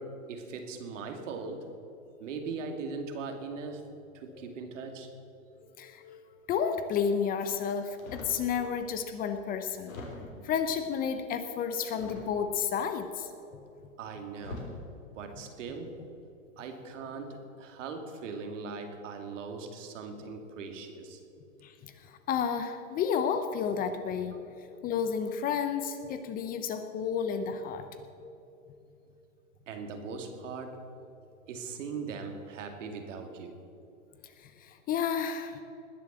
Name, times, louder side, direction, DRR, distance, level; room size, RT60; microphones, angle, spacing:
voice 1, 0.0-1.7 2.2-3.8 4.1-5.1 14.0-14.7 15.1-16.0 16.6-21.2 29.7-30.8 31.5-33.5, right 4 dB, 65° right, 5 dB, 2.5 m, -40 dB
voice 2, 5.8-9.9 10.4-13.6 21.6-27.9 34.2-35.6, left 7 dB, 20° left, 9 dB, 0.7 m, -32 dB
sound 1, 8.0-8.5 9.1-9.2 9.8-10.5 11.9-12.6 13.8-13.9 14.4-14.8 15.5-15.8, left 2 dB, 80° left, 3.7 m, -43 dB
20.0 x 7.4 x 7.4 m, 2.8 s
hypercardioid pair, 130°, 40 cm